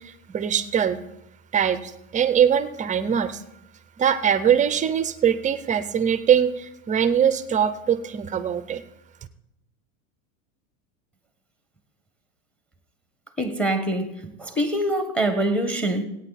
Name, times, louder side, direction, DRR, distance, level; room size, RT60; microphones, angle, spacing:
voice 1, 0.3-1.0 1.5-3.4 4.0-8.8, right 8 dB, 20° right, 13 dB, 0.5 m, -22 dB
voice 2, 13.4-14.1 14.4-16.0, right 1 dB, 5° left, 8 dB, 1.3 m, -24 dB
16.5 x 9.0 x 4.1 m, 0.86 s
supercardioid pair, 120°, 43 cm